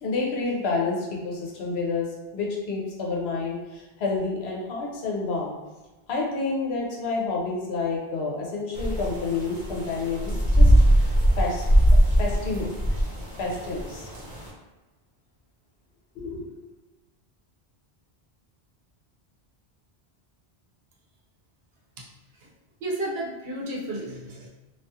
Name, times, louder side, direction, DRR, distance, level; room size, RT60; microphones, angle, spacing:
voice 1, 0.0-2.1 2.3-5.6 6.1-10.7 11.4-11.6 11.9-12.7 13.4-14.1 16.2-16.4, left 3 dB, 80° left, -2 dB, 0.9 m, -29 dB
sound 1, 8.7-14.5, equal, 45° right, 0.8 m, -21 dB
voice 2, 22.8-24.5, right 1 dB, 75° right, -2 dB, 0.8 m, -32 dB
2.4 x 2.4 x 2.6 m, 1.1 s
omnidirectional pair, 1.1 m